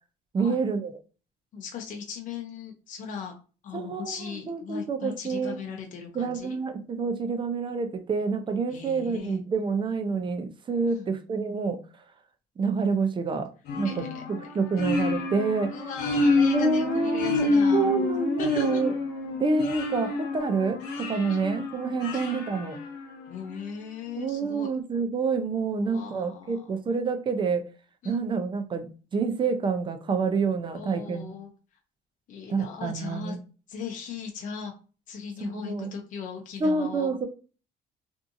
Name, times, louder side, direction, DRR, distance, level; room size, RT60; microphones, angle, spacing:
voice 1, 0.3-0.9 3.7-4.1 4.5-5.6 6.1-11.8 12.6-13.5 13.8-14.0 14.5-15.7 16.5-18.9 19.4-22.8 24.2-27.6 28.0-28.9 29.1-31.3 32.5-33.4 35.4-35.9 36.6-37.3, right 4 dB, 30° right, 7 dB, 0.5 m, -27 dB
voice 2, 1.5-3.3 3.6-6.6 8.7-9.4 10.9-11.1 13.8-14.9 15.7-17.9 18.4-18.8 21.3-21.5 22.1-22.3 23.3-24.7 25.8-26.8 28.0-28.2 30.7-31.5 32.3-33.4 33.7-34.7 35.1-37.1, left 6 dB, 50° left, 2 dB, 0.6 m, -38 dB
sound 1, 13.7-23.5, left 3 dB, 90° left, 0.8 m, -28 dB
2.6 x 2.4 x 2.6 m, 0.35 s
cardioid pair, 110°, 17 cm